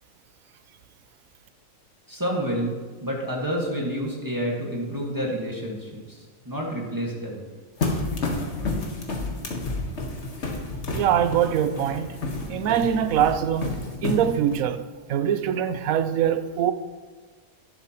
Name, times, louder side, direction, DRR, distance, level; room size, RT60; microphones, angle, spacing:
voice 1, 2.1-7.4, equal, 15° right, 1.8 m, -29 dB
sound 1, 7.8-14.6, left 2 dB, 55° left, 1.6 m, -30 dB
voice 2, 10.9-12.2 12.5-14.8 15.1-16.7, right 9 dB, 85° right, 1.0 m, -23 dB
11.0 x 10.5 x 3.0 m
omnidirectional pair, 1.4 m